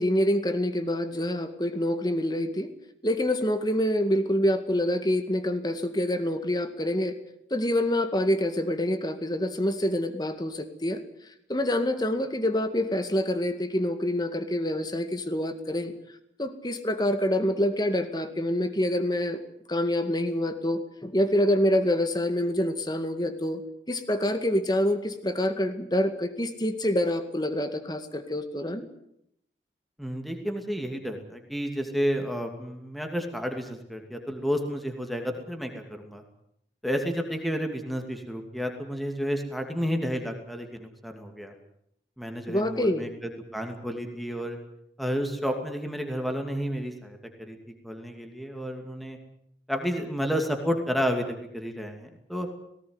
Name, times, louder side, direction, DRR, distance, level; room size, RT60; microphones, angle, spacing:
voice 1, 0.0-2.7 3.0-7.2 7.5-11.0 11.5-15.9 16.4-19.4 19.7-23.6 23.9-28.9 42.5-43.1, left 1 dB, 25° left, 8 dB, 2.0 m, -26 dB
voice 2, 30.0-36.2 36.8-41.5 42.2-43.1 43.5-44.6 45.0-47.6 47.8-49.2 49.7-52.5, equal, ahead, 4 dB, 2.6 m, -31 dB
18.5 x 18.0 x 9.7 m, 0.75 s
head